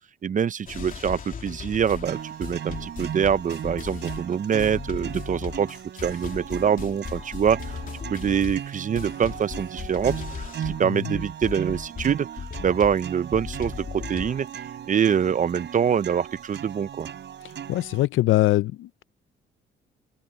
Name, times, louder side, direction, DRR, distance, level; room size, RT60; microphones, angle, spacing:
voice 1, 0.2-5.7 6.0-7.8 8.1-12.3 12.6-14.5 14.9-17.1, right 8 dB, 40° right, 0.6 m, -25 dB
sound 1, 0.7-10.9 11.1-14.5, left 6 dB, 45° left, 3.2 m, -37 dB
sound 2, 2.1-18.1, right 9 dB, 65° right, 5.0 m, -37 dB
voice 2, 17.7-19.0, left 16 dB, 80° left, 0.6 m, -22 dB
cardioid pair, 90°, 20 cm